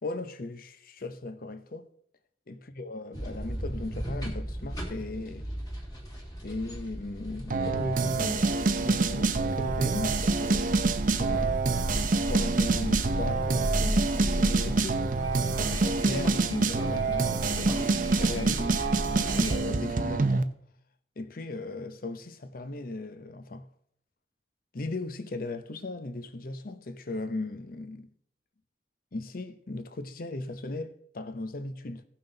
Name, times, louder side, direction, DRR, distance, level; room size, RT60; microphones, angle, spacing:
voice 1, 0.0-1.9 2.5-5.5 6.4-10.8 11.1-11.5 12.2-15.0 15.5-18.7 19.3-20.6 21.2-23.7 24.7-28.1 29.1-32.0, left 2 dB, 50° left, 0.7 m, -37 dB
sound 1, 3.1-19.6, equal, 20° left, 1.9 m, -35 dB
sound 2, 7.5-20.4, right 3 dB, 50° right, 0.6 m, -27 dB
15.5 x 5.9 x 3.9 m
head